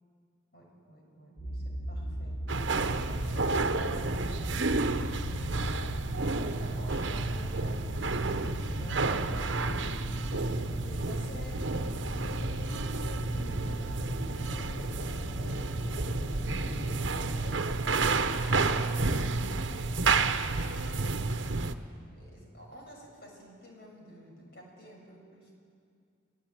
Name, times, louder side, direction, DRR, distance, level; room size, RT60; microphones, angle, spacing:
voice 1, 0.5-2.3 3.1-10.4 10.8-18.0 18.6-19.1 19.4-25.5, right 1 dB, 55° left, -1 dB, 6.8 m, -51 dB
sound 1, 1.4-17.4, equal, 30° left, 6.6 m, -38 dB
sound 2, 2.5-21.8, right 3 dB, 80° right, 1.1 m, -31 dB
29.5 x 17.0 x 8.9 m, 2.3 s
head